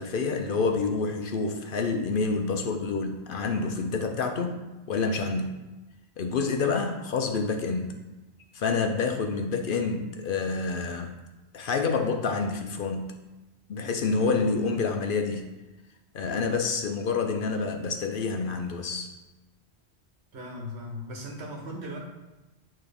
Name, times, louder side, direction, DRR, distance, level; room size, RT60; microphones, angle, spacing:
voice 1, 0.0-4.6 4.9-5.6 6.2-8.0 8.5-11.1 11.5-13.1 13.7-15.5 16.1-19.1, left 4 dB, 60° left, 5 dB, 0.7 m, -28 dB
voice 2, 20.3-22.0, equal, 80° right, 0 dB, 1.4 m, -38 dB
8.9 x 3.1 x 3.4 m, 1.1 s
omnidirectional pair, 1.1 m